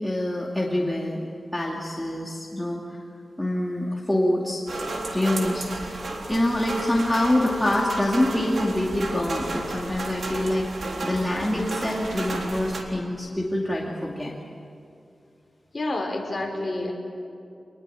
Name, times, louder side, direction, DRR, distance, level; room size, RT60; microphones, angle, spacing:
voice 1, 0.0-1.3 1.5-2.8 3.4-4.6 5.1-5.7 6.3-10.7 11.0-14.3, left 1 dB, 10° left, -3 dB, 2.5 m, -25 dB
sound 1, 4.7-12.8, right 2 dB, 70° right, 3.7 m, -33 dB
voice 2, 15.7-16.9, left 2 dB, 30° left, 1 dB, 5.5 m, -29 dB
26.5 x 21.0 x 9.3 m, 2.5 s
wide cardioid pair, 120°, 0 cm